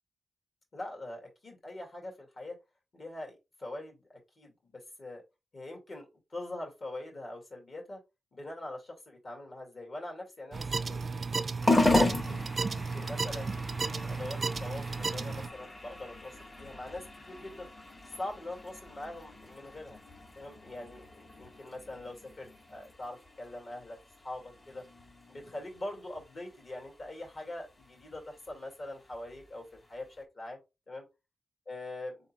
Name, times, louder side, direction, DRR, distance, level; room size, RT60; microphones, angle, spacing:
voice 1, 0.7-2.6 2.9-5.2 5.5-8.0 8.3-12.3 12.7-17.7 18.2-20.0 20.4-24.8 25.3-30.6 30.9-31.0 31.7-32.2, left 1 dB, 45° left, 0 dB, 2.0 m, -43 dB
sound 1, 10.5-15.5, right 4 dB, 45° right, 0.3 m, -34 dB
sound 2, 11.6-30.2, left 2 dB, 25° left, 1.0 m, -36 dB
4.1 x 3.5 x 2.9 m, 0.24 s
wide cardioid pair, 140°, 0 cm